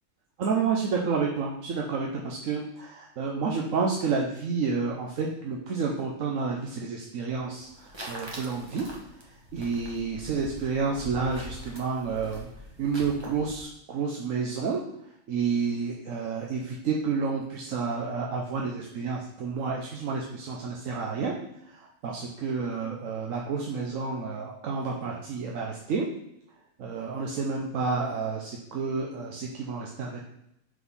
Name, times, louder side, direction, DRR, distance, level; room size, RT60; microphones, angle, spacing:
voice 1, 0.4-8.9 9.5-12.5 12.8-14.8 15.3-21.3 21.7-26.1 26.8-30.2, right 5 dB, 65° right, -1 dB, 1.1 m, -30 dB
sound 1, 7.6-13.6, equal, 20° right, 1.1 m, -43 dB
6.0 x 4.0 x 5.5 m, 0.79 s
omnidirectional pair, 1.6 m